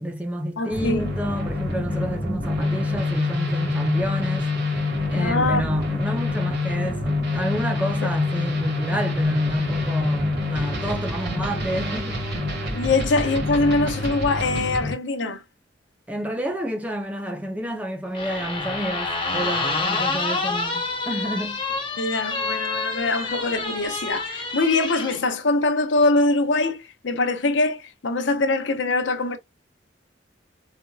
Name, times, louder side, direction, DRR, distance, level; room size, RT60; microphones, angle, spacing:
voice 1, 0.0-4.5 5.1-12.2 16.1-21.6, equal, 10° right, 0.6 m, -29 dB
voice 2, 0.6-1.1 5.1-5.7 12.7-15.4 22.0-29.4, left 2 dB, 80° left, 0.7 m, -23 dB
sound 1, 0.7-14.9, left 2 dB, 60° right, 2.0 m, -26 dB
sound 2, 18.1-25.2, left 3 dB, 25° left, 1.0 m, -28 dB
4.2 x 2.5 x 2.3 m
head